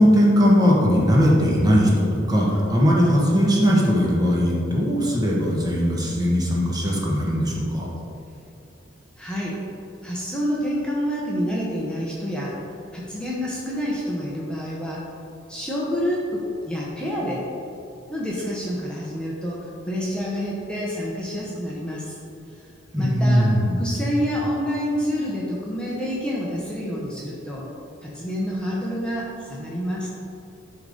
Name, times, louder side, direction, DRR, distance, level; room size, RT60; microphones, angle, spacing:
voice 1, 0.0-7.9 22.9-23.8, equal, 20° right, -4 dB, 1.4 m, -19 dB
voice 2, 9.2-9.6 10.0-12.6 12.9-15.1 15.5-17.5 18.1-22.2 23.0-23.5 23.8-27.7 28.0-30.1, equal, 5° left, -6 dB, 1.0 m, -28 dB
11.0 x 3.9 x 5.2 m, 2.8 s
head